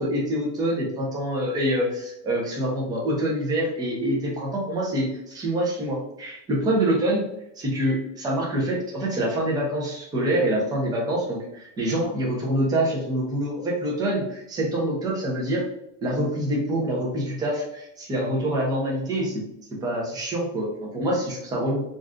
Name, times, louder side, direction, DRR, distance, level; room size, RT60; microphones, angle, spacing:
voice 1, 0.0-7.2 7.6-15.6 16.0-19.4 19.8-21.8, right 1 dB, 10° right, -3 dB, 0.5 m, -26 dB
2.6 x 2.3 x 3.5 m, 0.80 s
supercardioid pair, 155°, 37 cm